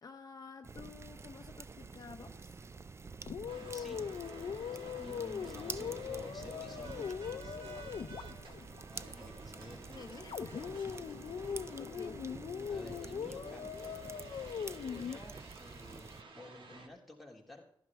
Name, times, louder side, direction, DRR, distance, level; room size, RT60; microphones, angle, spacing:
voice 1, 0.0-2.6 4.6-4.9 9.9-10.8 11.7-12.2, left 4 dB, 50° left, 5 dB, 0.9 m, -50 dB
sound 1, 0.6-16.2, right 4 dB, 30° right, 0.4 m, -49 dB
sound 2, 3.3-8.8 10.3-15.2, left 7 dB, 90° left, 0.6 m, -41 dB
sound 3, 3.5-16.9, right 3 dB, 75° right, 2.0 m, -53 dB
voice 2, 3.7-4.0 5.0-7.8 8.8-9.9 12.7-14.0 14.8-17.6, left 1 dB, ahead, -3 dB, 3.0 m, -52 dB
15.0 x 11.5 x 3.5 m, 0.70 s
wide cardioid pair, 150°, 9 cm